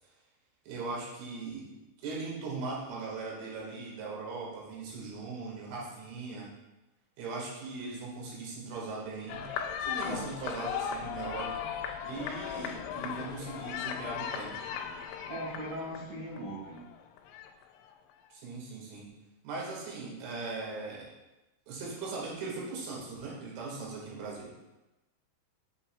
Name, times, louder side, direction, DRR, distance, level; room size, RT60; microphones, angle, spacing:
voice 1, 0.7-1.7 2.0-6.5 7.2-9.5 9.8-11.7 12.0-14.5 18.3-19.1 19.4-21.1 21.7-24.5, right 3 dB, 85° right, -4 dB, 4.2 m, -39 dB
sound 1, 9.3-18.1, left 8 dB, 85° left, 3.0 m, -38 dB
voice 2, 15.3-16.8, right 1 dB, 50° right, -5 dB, 3.0 m, -39 dB
8.2 x 7.3 x 2.3 m, 1.0 s
omnidirectional pair, 5.5 m